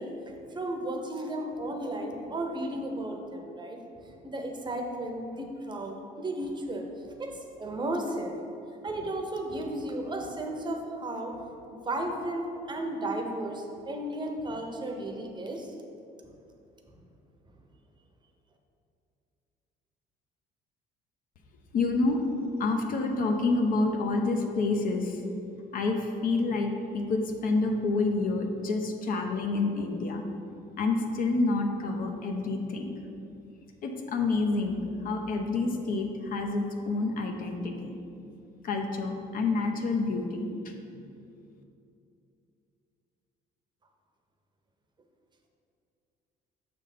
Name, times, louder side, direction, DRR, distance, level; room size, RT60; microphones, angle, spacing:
voice 1, 0.0-8.4 8.8-15.7, right 1 dB, 25° right, 3 dB, 0.8 m, -34 dB
voice 2, 21.7-22.2 22.6-25.2 25.7-30.2 30.8-32.9 33.8-37.9 38.6-40.7, left 3 dB, 55° left, 4 dB, 0.7 m, -28 dB
6.5 x 3.5 x 5.8 m, 2.7 s
cardioid pair, 110°, 17 cm